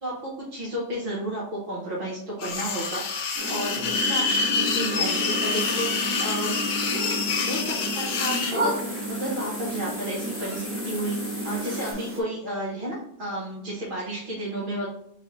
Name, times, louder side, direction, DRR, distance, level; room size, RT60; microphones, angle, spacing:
voice 1, 0.0-5.9 6.2-6.6 7.5-8.7 9.1-11.2 11.4-14.9, right 1 dB, 50° right, -6 dB, 1.1 m, -32 dB
sound 1, 2.4-8.6, left 4 dB, 55° left, 0.6 m, -27 dB
sound 2, 2.5-2.6 3.6-4.0 5.0-11.9, left 1 dB, 15° left, 0.8 m, -39 dB
sound 3, 3.4-12.2, equal, 20° right, 0.4 m, -32 dB
3.5 x 3.2 x 3.9 m, 0.76 s
omnidirectional pair, 1.2 m